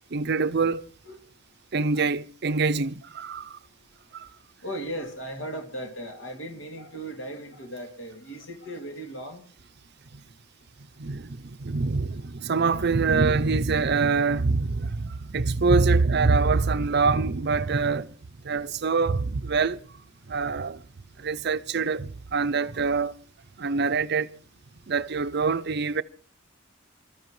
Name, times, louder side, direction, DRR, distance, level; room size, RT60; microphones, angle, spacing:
voice 1, 0.1-0.8 1.7-3.6 4.1-4.3 11.0-18.1 18.4-19.8 20.3-20.8 21.2-23.2 23.6-24.4 24.9-26.0, right 4 dB, 55° right, 0.6 m, -25 dB
voice 2, 4.6-9.5, right 1 dB, 65° left, 2.7 m, -37 dB
26.0 x 13.5 x 3.2 m
head